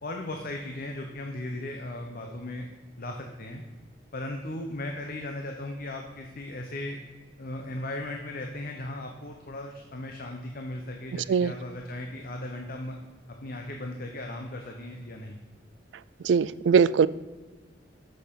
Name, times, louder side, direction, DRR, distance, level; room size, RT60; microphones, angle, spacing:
voice 1, 0.0-2.7 3.0-3.6 4.1-7.0 7.4-13.0 13.4-15.4, left 1 dB, 55° left, 3 dB, 0.9 m, -37 dB
voice 2, 16.2-17.1, right 6 dB, 80° right, 18 dB, 0.3 m, -21 dB
7.9 x 6.6 x 5.3 m, 1.3 s
head